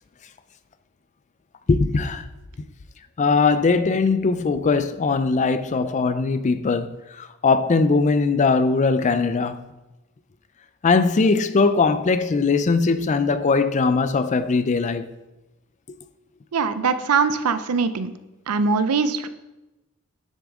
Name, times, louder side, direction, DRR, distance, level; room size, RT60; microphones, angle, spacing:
voice 1, 1.7-2.2 3.2-9.7 10.8-15.1, left 4 dB, 30° left, 0.4 m, -20 dB
voice 2, 16.5-18.1 18.5-19.3, right 5 dB, 80° right, 0.5 m, -22 dB
9.2 x 7.1 x 3.6 m
head